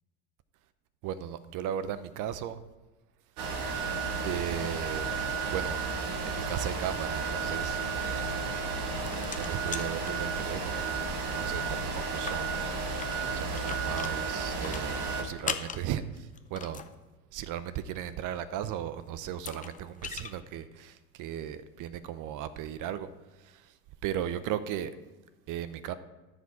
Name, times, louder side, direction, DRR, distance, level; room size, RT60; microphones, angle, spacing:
voice 1, 1.0-2.6 4.2-5.1 5.5-7.8 8.1-8.4 9.4-10.9 11.3-12.6 13.3-16.8 17.3-23.1 23.4-23.7 24.0-24.9 25.5-25.9, right 10 dB, 45° right, 13 dB, 0.7 m, -36 dB
sound 1, 3.4-15.2, right 4 dB, 75° right, 1.8 m, -33 dB
sound 2, 5.3-11.5, left 5 dB, ahead, 2.1 m, -52 dB
sound 3, 8.6-10.9 11.2-11.3 11.6-11.7 12.1-16.9 18.7-18.8 19.3-20.3, left 7 dB, 20° left, 0.6 m, -40 dB
13.5 x 5.0 x 4.8 m, 1.2 s
supercardioid pair, 100°, 44 cm